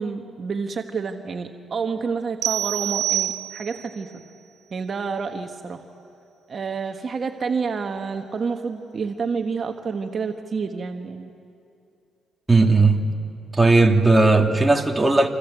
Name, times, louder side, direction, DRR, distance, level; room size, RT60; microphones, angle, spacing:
voice 1, 0.0-4.2 4.7-5.8 6.5-11.3, right 5 dB, 45° right, 1.3 m, -29 dB
sound 1, 2.4-3.9, right 12 dB, 75° right, 0.8 m, -26 dB
voice 2, 12.5-13.1 13.5-15.3, right 3 dB, 10° right, 2.1 m, -16 dB
27.5 x 26.0 x 8.1 m
cardioid pair, 90°, 0 cm